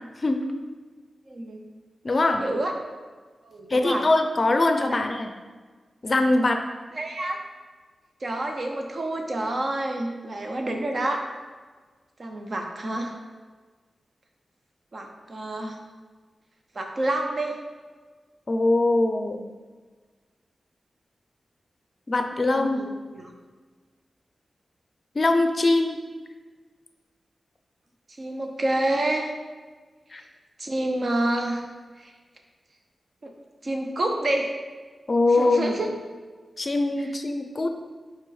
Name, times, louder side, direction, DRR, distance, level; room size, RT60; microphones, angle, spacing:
voice 1, 1.3-1.6 2.2-2.7 3.4-4.1 4.9-5.0 6.9-7.4 8.2-11.3 12.2-13.1 14.9-15.8 16.7-17.6 22.5-23.3 28.2-29.3 30.6-31.6 32.0-32.1 33.2-33.3 33.6-34.5 35.3-35.9, right 1 dB, 45° right, 3 dB, 0.7 m, -28 dB
voice 2, 2.0-2.4 3.7-5.3 6.0-6.6 18.5-19.4 22.1-22.8 25.1-26.0 30.1-30.2 35.1-35.8 36.6-37.7, left 2 dB, 40° left, 5 dB, 0.5 m, -22 dB
5.5 x 4.5 x 4.0 m, 1.4 s
wide cardioid pair, 115°, 0 cm